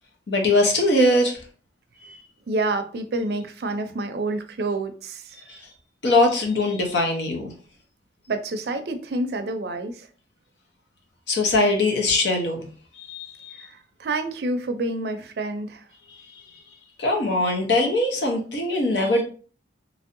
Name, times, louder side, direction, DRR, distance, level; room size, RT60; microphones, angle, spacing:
voice 1, 0.3-1.4 2.0-2.2 5.5-5.7 6.0-7.5 11.3-12.7 13.0-13.5 17.0-19.2, left 2 dB, 80° left, 0.8 m, -21 dB
voice 2, 2.5-5.4 8.3-10.1 13.6-15.8, right 2 dB, 65° right, 0.4 m, -28 dB
3.1 x 2.6 x 2.5 m
head